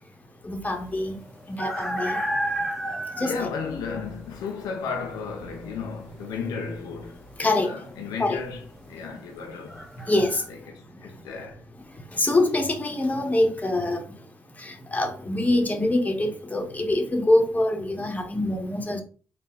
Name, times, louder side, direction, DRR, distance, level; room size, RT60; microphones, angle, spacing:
voice 1, 0.4-1.1 1.5-2.2 3.2-3.5 7.4-7.7 8.2-8.4 10.1-10.4 12.1-14.0 14.6-19.0, left 1 dB, 25° left, 1.3 m, -24 dB
sound 1, 0.7-10.4, equal, 5° right, 1.5 m, -33 dB
voice 2, 3.2-9.9 10.5-11.6, left 5 dB, 85° left, 0.6 m, -34 dB
4.0 x 2.7 x 3.9 m
supercardioid pair, 45°, 6 cm